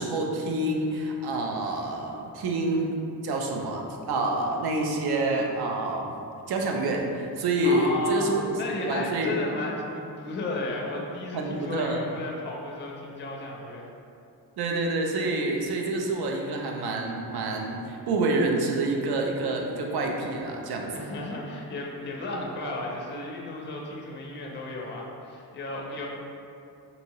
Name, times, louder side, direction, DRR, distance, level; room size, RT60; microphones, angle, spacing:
voice 1, 0.0-2.9 3.2-6.1 6.5-8.5 8.8-9.3 11.3-12.0 14.6-21.1, right 2 dB, 75° right, 1 dB, 0.5 m, -27 dB
voice 2, 7.6-8.3 8.6-13.9 20.9-26.1, left 2 dB, 30° left, -2 dB, 0.4 m, -34 dB
2.7 x 2.7 x 2.9 m, 2.6 s
wide cardioid pair, 155°, 39 cm